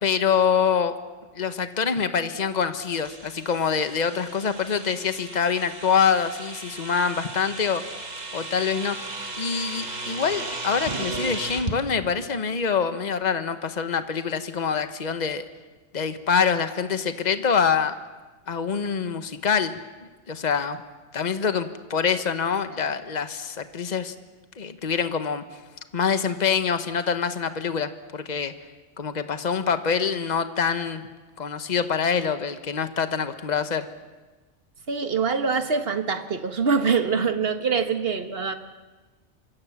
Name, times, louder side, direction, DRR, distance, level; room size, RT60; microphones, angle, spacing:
voice 1, 0.0-1.0 1.3-7.8 8.3-9.0 9.4-15.4 15.9-17.9 18.5-19.7 20.3-20.8 21.1-24.1 24.6-25.4 25.9-28.5 29.0-31.0 31.4-33.9, left 6 dB, 35° left, 10 dB, 1.3 m, -25 dB
sound 1, 3.0-11.8, right 2 dB, 35° right, 1.8 m, -35 dB
voice 2, 34.9-38.5, right 5 dB, 55° right, 8 dB, 1.7 m, -24 dB
25.5 x 25.0 x 7.3 m, 1.2 s
omnidirectional pair, 1.2 m